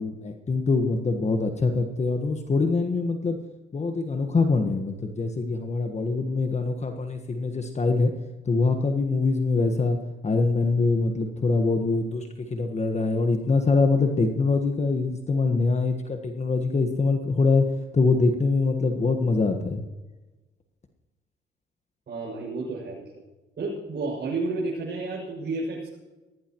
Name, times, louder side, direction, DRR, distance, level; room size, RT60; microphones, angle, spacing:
voice 1, 0.0-3.4 3.7-8.1 8.4-10.0 10.2-17.6 17.9-19.8, left 3 dB, 35° left, 5 dB, 1.5 m, -24 dB
voice 2, 22.1-23.0 23.6-26.0, right 3 dB, 55° right, -6 dB, 6.7 m, -31 dB
19.0 x 17.0 x 3.1 m, 1.1 s
cardioid pair, 90°, 20 cm